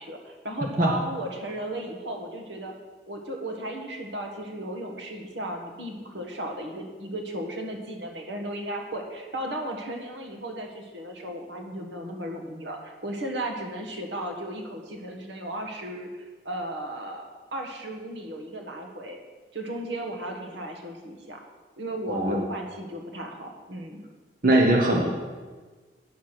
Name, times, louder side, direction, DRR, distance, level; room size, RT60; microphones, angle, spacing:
voice 1, 0.0-2.7 3.1-17.2 17.5-19.2 19.5-21.4 21.8-24.0, right 1 dB, 70° right, 3 dB, 1.4 m, -35 dB
voice 2, 24.4-25.1, right 1 dB, 45° right, -1 dB, 1.0 m, -20 dB
9.3 x 6.6 x 6.1 m, 1.4 s
head